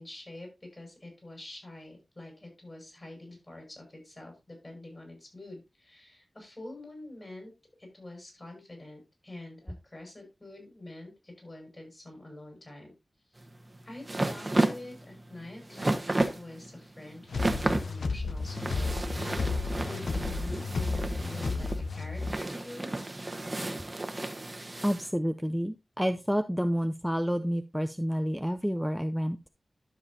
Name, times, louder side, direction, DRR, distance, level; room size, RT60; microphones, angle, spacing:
voice 1, 0.0-7.5 7.8-12.9 13.3-13.4 13.8-19.4 19.9-22.9, left 1 dB, 35° left, 2 dB, 6.1 m, -46 dB
sound 1, 13.4-25.1, right 2 dB, 30° right, 1.1 m, -33 dB
sound 2, 17.3-22.4, left 4 dB, 80° left, 0.8 m, -32 dB
voice 2, 24.8-29.4, equal, ahead, 7 dB, 0.5 m, -29 dB
12.5 x 7.0 x 2.8 m, 0.25 s
wide cardioid pair, 80°, 0 cm